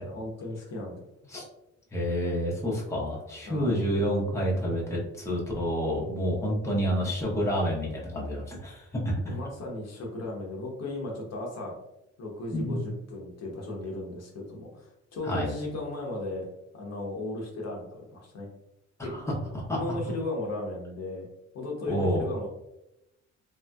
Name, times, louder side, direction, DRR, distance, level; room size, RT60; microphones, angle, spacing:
voice 1, 0.0-1.3 3.5-3.8 9.3-11.7 12.2-18.5 19.0-19.1 19.7-21.3 21.5-22.5, left 2 dB, 60° left, -1 dB, 0.9 m, -36 dB
voice 2, 1.9-9.3 12.5-12.8 15.2-15.5 19.0-19.8 21.9-22.2, equal, 10° left, -4 dB, 0.9 m, -29 dB
3.1 x 2.8 x 2.3 m, 0.89 s
cardioid pair, 90°, 30 cm